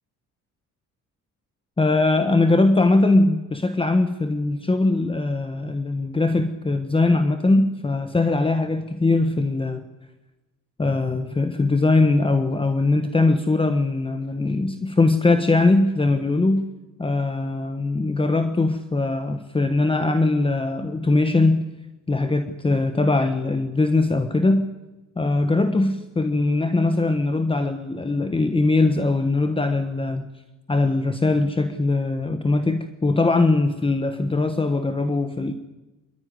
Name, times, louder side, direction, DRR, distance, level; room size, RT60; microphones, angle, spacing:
voice 1, 1.8-9.8 10.8-16.7 17.0-21.7 22.1-24.7 25.2-30.3 30.7-35.5, left 2 dB, 15° left, 9 dB, 1.2 m, -21 dB
26.5 x 12.0 x 9.5 m, 1.1 s
cardioid pair, 90°, 30 cm